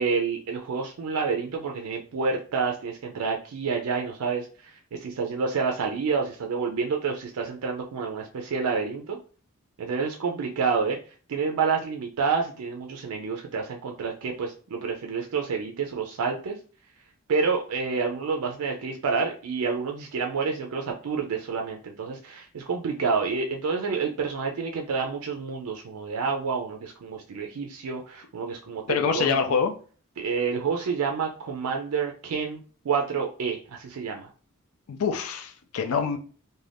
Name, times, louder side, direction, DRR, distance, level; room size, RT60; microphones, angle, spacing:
voice 1, 0.0-9.2 9.8-11.0 11.3-16.6 17.3-29.6 30.2-34.3, right 5 dB, 75° right, 0.4 m, -28 dB
voice 2, 28.9-29.7 34.9-36.2, left 6 dB, 70° left, 0.4 m, -25 dB
2.5 x 2.2 x 3.3 m
head